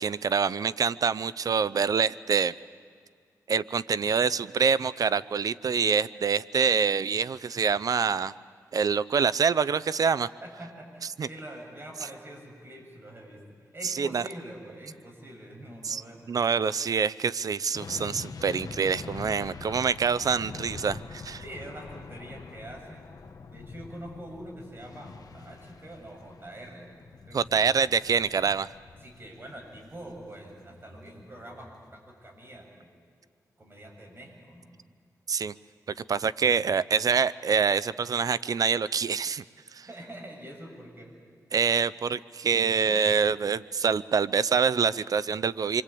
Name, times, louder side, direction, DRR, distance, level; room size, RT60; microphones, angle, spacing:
voice 1, 0.0-2.5 3.5-8.3 8.7-10.3 11.2-11.3 13.8-14.2 15.8-16.0 16.3-21.4 27.3-28.7 35.3-35.5 36.1-39.4 39.7-39.9 41.5-45.8, right 6 dB, 65° right, 17 dB, 0.6 m, -26 dB
voice 2, 10.4-13.4 13.7-16.3 21.4-23.0 23.5-26.9 27.2-27.8 29.0-33.0 33.6-34.7 39.9-41.1, right 1 dB, 35° right, 1 dB, 7.2 m, -45 dB
sound 1, 17.7-30.9 31.2-31.3, left 4 dB, 75° left, 1.6 m, -44 dB
26.5 x 24.0 x 8.5 m, 2.1 s
cardioid pair, 70°, 7 cm